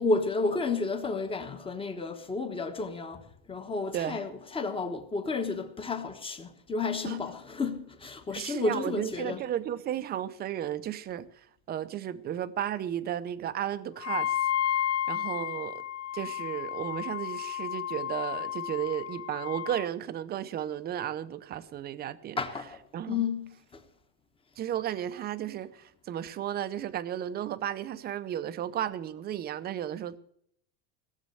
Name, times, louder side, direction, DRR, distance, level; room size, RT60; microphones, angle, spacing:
voice 1, 0.0-3.2 3.5-4.3 4.5-9.4 22.4-22.7 23.1-23.5, left 3 dB, 15° left, 1.1 m, -31 dB
voice 2, 3.9-4.2 7.0-7.2 8.3-15.8 16.1-22.4 22.9-23.3 24.6-30.2, right 11 dB, 25° right, 0.6 m, -34 dB
Wind instrument woodwind instrument, 14.0-19.9, left 10 dB, 60° left, 0.8 m, -32 dB
17.5 x 7.4 x 7.7 m
supercardioid pair, 145°, 39 cm